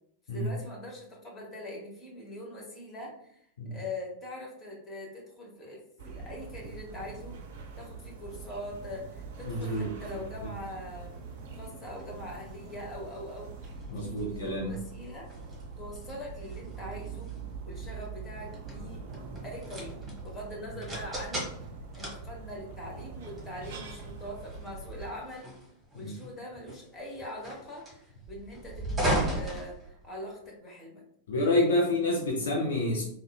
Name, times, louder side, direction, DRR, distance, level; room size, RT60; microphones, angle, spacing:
voice 1, 0.3-7.4 7.8-11.1 11.5-15.3 15.8-17.3 17.6-19.0 19.4-21.5 22.0-25.5 25.9-31.0, left 1 dB, 25° left, -2 dB, 1.0 m, -42 dB
sound 1, 6.0-25.1, right 4 dB, 55° right, 0.4 m, -43 dB
voice 2, 9.4-9.9 13.9-14.7 26.0-26.1 31.3-33.0, left 1 dB, 60° left, -2 dB, 0.5 m, -28 dB
sound 2, 11.1-30.5, right 1 dB, 10° right, 1.1 m, -38 dB
3.5 x 2.1 x 2.2 m, 0.70 s
figure-of-eight pair, 90°, 0 cm